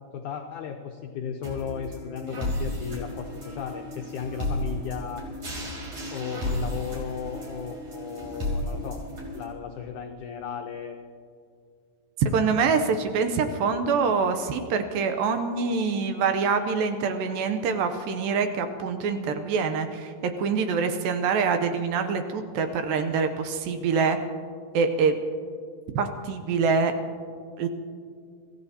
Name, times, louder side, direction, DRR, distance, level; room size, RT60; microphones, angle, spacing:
voice 1, 0.1-5.3 6.1-9.0 9.3-11.0, left 7 dB, 85° left, 3 dB, 1.7 m, -35 dB
sound 1, 1.4-9.4, left 1 dB, 50° right, 4.7 m, -33 dB
voice 2, 12.2-24.2 24.7-25.2 26.0-26.9 27.6-27.7, right 5 dB, 75° right, 7 dB, 2.3 m, -25 dB
25.5 x 15.0 x 2.8 m, 2.1 s
omnidirectional pair, 4.5 m